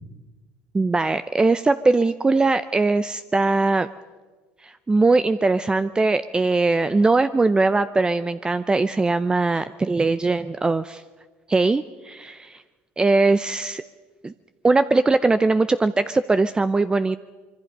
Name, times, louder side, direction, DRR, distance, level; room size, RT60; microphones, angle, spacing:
voice 1, 0.7-3.9 4.6-11.0 11.5-12.6 13.0-13.8 14.2-14.3 14.6-17.2, right 3 dB, 15° right, 12 dB, 0.6 m, -20 dB
25.0 x 23.0 x 5.5 m, 1.4 s
supercardioid pair, 85°, 5 cm